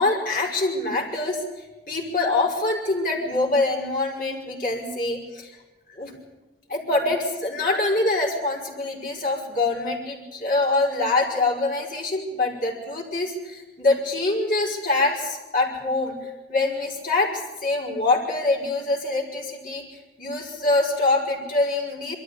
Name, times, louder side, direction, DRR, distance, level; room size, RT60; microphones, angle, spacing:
voice 1, 0.0-1.4 1.9-5.5 5.9-6.1 6.7-19.8 20.2-22.2, left 2 dB, 50° left, 0 dB, 5.5 m, -24 dB
23.0 x 14.0 x 9.7 m, 1.1 s
head